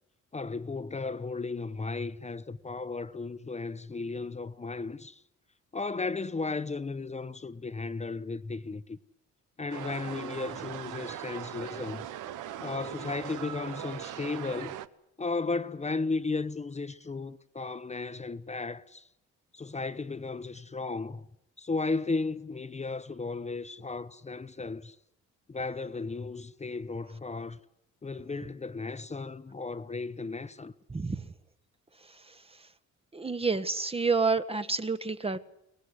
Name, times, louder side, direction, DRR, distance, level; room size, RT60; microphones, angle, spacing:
voice 1, 0.3-5.2 5.7-9.0 9.6-12.1 12.5-14.8 15.2-19.1 19.5-21.3 21.6-25.0 25.5-27.6 28.0-30.7, left 3 dB, 20° left, 0.9 m, -35 dB
sound 1, 9.7-14.9, right 11 dB, 85° right, 1.0 m, -40 dB
voice 2, 33.1-35.4, right 4 dB, 20° right, 1.1 m, -28 dB
23.5 x 18.5 x 9.8 m
cardioid pair, 90°, 30 cm